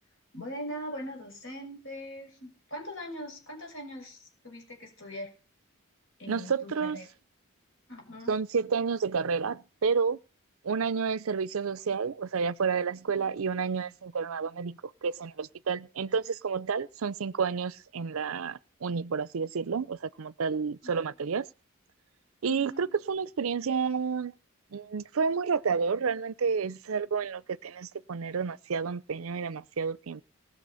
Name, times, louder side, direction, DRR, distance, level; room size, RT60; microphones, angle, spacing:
voice 1, 0.3-5.3 6.2-7.1 7.9-8.3 13.1-13.2 20.8-20.9 22.4-22.9, equal, 60° left, 5.8 m, -41 dB
voice 2, 6.3-7.0 8.3-10.2 10.6-21.5 22.4-24.3 24.7-30.2, right 5 dB, 75° right, 0.5 m, -30 dB
19.5 x 6.9 x 5.7 m
head